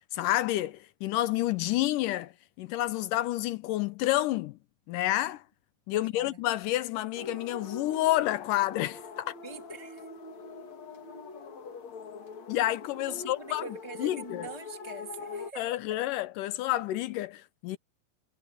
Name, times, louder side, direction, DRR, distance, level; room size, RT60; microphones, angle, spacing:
voice 1, 0.1-2.3 2.6-4.6 4.9-5.4 5.9-9.4 12.5-13.6 14.0-14.5 15.6-17.8, left 15 dB, 80° left, 2.0 m, -29 dB
voice 2, 5.9-6.4 9.4-10.1 13.1-16.0, right 3 dB, 10° left, 2.2 m, -44 dB
sound 1, 7.2-15.5, left 4 dB, 50° left, 3.6 m, -43 dB
omnidirectional pair, 4.4 m